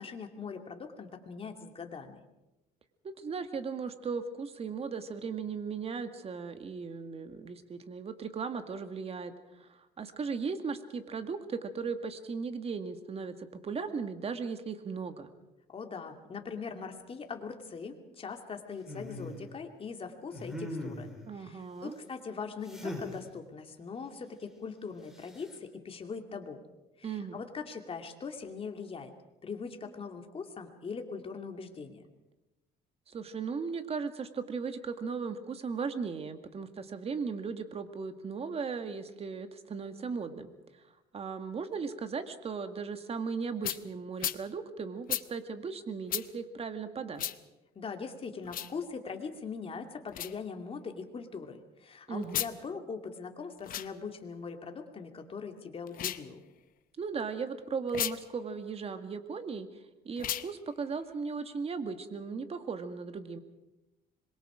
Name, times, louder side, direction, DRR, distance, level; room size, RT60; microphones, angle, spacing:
voice 1, 0.0-2.2 15.7-21.1 21.3-26.6 27.0-29.1 29.4-32.0 47.7-56.4, left 5 dB, 35° left, 5 dB, 2.5 m, -41 dB
voice 2, 3.0-15.3 21.3-22.0 27.0-27.4 33.1-40.5 41.1-47.2 52.1-52.5 57.0-59.7 60.1-63.4, right 5 dB, 35° right, 9 dB, 1.9 m, -37 dB
sound 1, 18.8-19.4 20.3-21.2 22.7-23.2 25.1-25.5, left 1 dB, 5° right, 4.4 m, -40 dB
sound 2, 43.6-43.8 44.2-44.4 45.1-45.2 46.1-46.3 47.2-47.4 48.4-48.7 50.1-50.3 52.2-52.5 53.6-53.9 55.9-56.3 57.9-58.2 60.2-60.5, left 11 dB, 55° left, 0.9 m, -34 dB
26.0 x 22.0 x 5.0 m, 1.0 s
cardioid pair, 110°, 17 cm